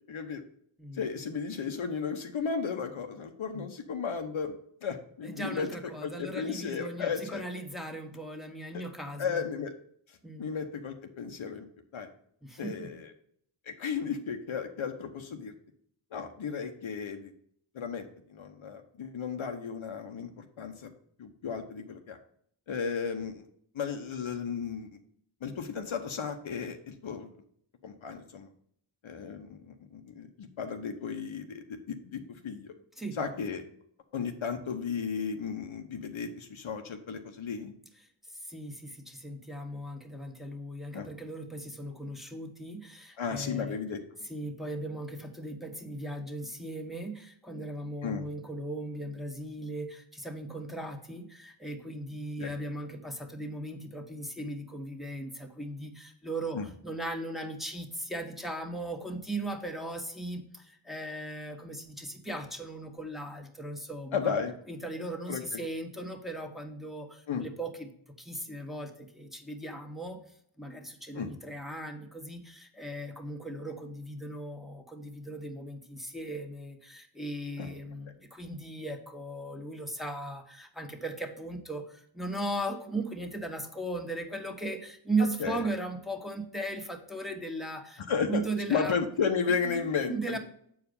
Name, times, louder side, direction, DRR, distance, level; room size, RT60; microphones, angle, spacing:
voice 1, 0.1-0.4 0.9-4.5 4.8-5.7 6.0-7.4 9.2-9.7 10.4-11.7 11.9-12.1 12.6-13.1 13.7-15.5 16.1-17.3 17.7-20.9 21.2-22.2 22.7-23.4 23.7-24.9 25.4-27.3 27.8-28.5 29.0-32.7 33.2-33.6 34.1-37.7 40.9-41.1 43.2-44.0 48.0-48.3 52.4-52.5 56.5-56.7 64.1-64.5 65.3-65.6 67.3-67.4 71.1-71.3 77.6-77.7 85.4-85.6 88.1-88.4 88.7-90.4, left 6 dB, 70° left, 5 dB, 1.0 m, -34 dB
voice 2, 0.8-1.1 3.5-3.7 5.2-9.5 10.2-10.5 12.4-13.0 32.9-33.2 38.2-43.8 44.3-64.3 64.7-67.9 68.2-70.2 70.6-89.0 89.6-90.4, right 1 dB, ahead, 3 dB, 1.4 m, -37 dB
7.5 x 4.8 x 5.3 m, 0.66 s
cardioid pair, 65°, 49 cm